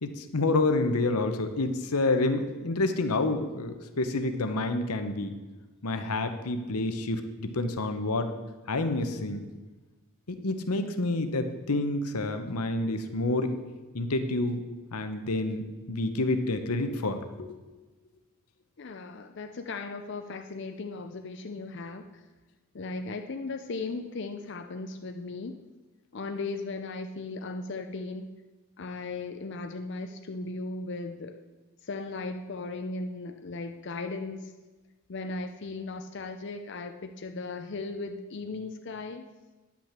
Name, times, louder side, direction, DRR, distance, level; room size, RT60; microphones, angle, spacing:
voice 1, 0.0-5.3 5.8-8.3 8.7-9.4 10.3-13.5 13.9-14.6 14.9-17.6, left 2 dB, 90° left, 8 dB, 1.0 m, -28 dB
voice 2, 18.8-22.1 22.7-25.6 26.1-28.3 28.8-31.4 31.8-34.5 35.1-39.2, left 3 dB, 50° left, 6 dB, 0.5 m, -37 dB
10.0 x 6.0 x 7.4 m, 1.2 s
head